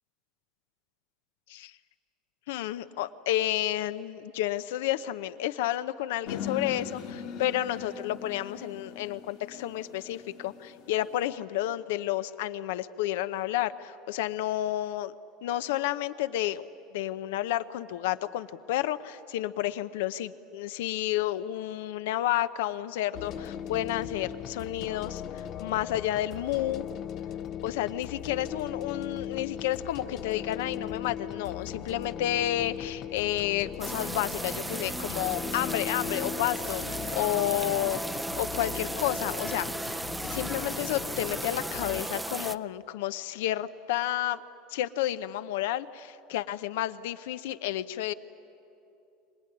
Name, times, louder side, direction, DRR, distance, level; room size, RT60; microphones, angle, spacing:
voice 1, 2.5-15.1 15.4-16.7 16.9-26.9 27.6-38.0 38.4-39.9 40.2-44.4 44.7-48.1, left 13 dB, 85° left, 13 dB, 0.8 m, -31 dB
sound 1, 6.3-11.3, left 7 dB, 65° left, 2.4 m, -40 dB
sound 2, 23.1-42.0, left 10 dB, 50° left, 0.7 m, -39 dB
sound 3, 33.8-42.6, right 1 dB, 5° right, 0.5 m, -35 dB
25.0 x 19.0 x 9.9 m, 2.8 s
supercardioid pair, 120°, 0 cm